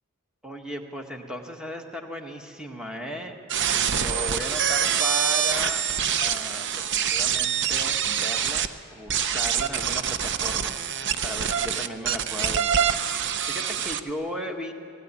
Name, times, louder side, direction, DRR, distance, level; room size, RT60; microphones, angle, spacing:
voice 1, 0.4-5.8 6.2-12.9 13.2-14.7, left 1 dB, 5° right, 2 dB, 1.6 m, -36 dB
sound 1, 3.5-8.7 9.1-14.0, right 8 dB, 55° right, 0.7 m, -25 dB
18.0 x 17.0 x 9.7 m, 2.6 s
head